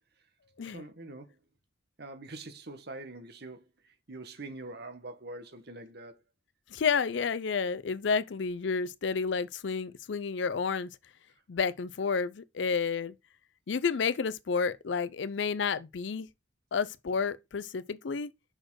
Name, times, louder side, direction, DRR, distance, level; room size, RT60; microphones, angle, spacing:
voice 1, 0.7-1.4 2.0-6.2, right 2 dB, 55° right, 1.2 m, -44 dB
voice 2, 6.7-10.9 11.5-13.1 13.7-16.3 16.7-18.3, left 5 dB, 65° left, 0.5 m, -30 dB
6.3 x 4.4 x 4.7 m
head